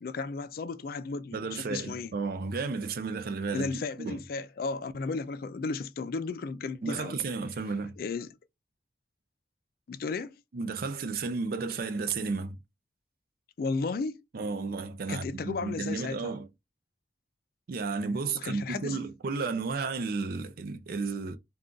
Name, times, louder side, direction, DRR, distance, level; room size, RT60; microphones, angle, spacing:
voice 1, 0.0-2.1 3.5-7.2 8.0-8.3 9.9-10.3 13.6-14.2 15.1-16.3 18.3-19.0, left 4 dB, 55° left, 0.3 m, -34 dB
voice 2, 1.3-3.7 4.0-4.2 6.8-8.0 10.5-12.6 14.3-16.5 17.7-21.4, right 4 dB, 55° right, 0.4 m, -33 dB
2.4 x 2.3 x 3.7 m
head